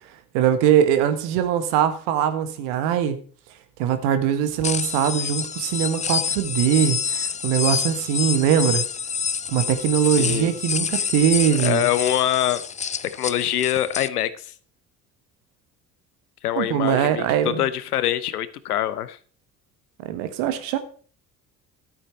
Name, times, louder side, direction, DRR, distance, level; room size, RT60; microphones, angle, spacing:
voice 1, 0.3-3.2 3.8-8.8 9.5-11.9 16.6-17.6 20.0-20.8, right 9 dB, 65° right, 1.6 m, -21 dB
sound 1, 4.6-14.1, left 6 dB, 15° left, 0.5 m, -27 dB
voice 2, 10.2-10.5 11.0-11.1 11.6-12.6 13.0-14.5 16.4-19.2, left 12 dB, 85° left, 0.9 m, -24 dB
12.5 x 8.8 x 4.5 m
figure-of-eight pair, 55°, 44 cm